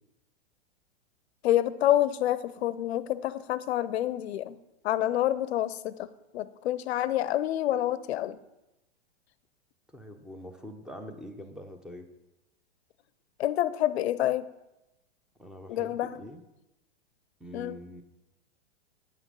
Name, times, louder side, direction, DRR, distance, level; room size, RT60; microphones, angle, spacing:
voice 1, 1.4-4.6 4.8-8.4 13.4-14.5 15.7-16.2 17.5-17.8, left 12 dB, 65° left, 17 dB, 0.6 m, -28 dB
voice 2, 9.9-12.1 15.4-16.4 17.4-18.0, equal, ahead, 6 dB, 0.7 m, -44 dB
9.6 x 5.8 x 5.6 m, 0.95 s
hypercardioid pair, 120°, 35 cm